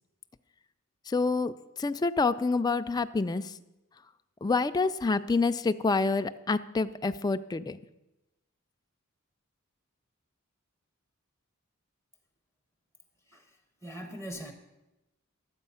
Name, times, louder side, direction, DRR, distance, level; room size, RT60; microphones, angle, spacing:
voice 1, 1.1-3.5 4.4-7.8, left 3 dB, 20° left, 9 dB, 0.3 m, -27 dB
voice 2, 13.3-14.5, equal, 15° right, 5 dB, 0.7 m, -42 dB
12.0 x 8.0 x 5.6 m, 1.0 s
head